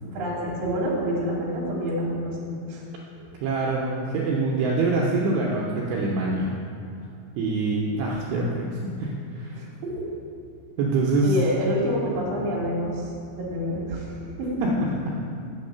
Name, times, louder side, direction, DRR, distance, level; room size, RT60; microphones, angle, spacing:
voice 1, 0.0-2.8 9.5-9.9 11.2-14.7, equal, 65° right, -4 dB, 2.0 m, -28 dB
voice 2, 3.4-6.6 7.4-9.6 10.8-11.3 14.8-15.1, right 3 dB, 80° right, -3 dB, 2.6 m, -25 dB
8.2 x 3.7 x 6.5 m, 2.5 s
omnidirectional pair, 5.4 m